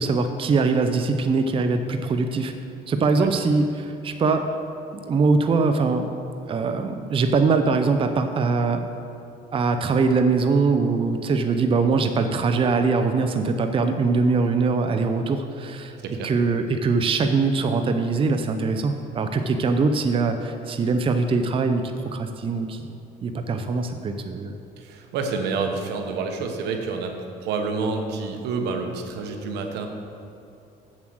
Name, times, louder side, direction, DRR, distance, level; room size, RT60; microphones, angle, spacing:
voice 1, 0.0-2.5 2.9-4.5 4.9-6.1 6.5-8.8 9.5-23.0 23.2-24.5, right 4 dB, 30° right, 7 dB, 0.6 m, -22 dB
voice 2, 16.0-16.3 24.8-29.9, right 4 dB, 85° right, 4 dB, 1.1 m, -28 dB
7.7 x 7.3 x 6.2 m, 2.7 s
cardioid pair, 110°, 17 cm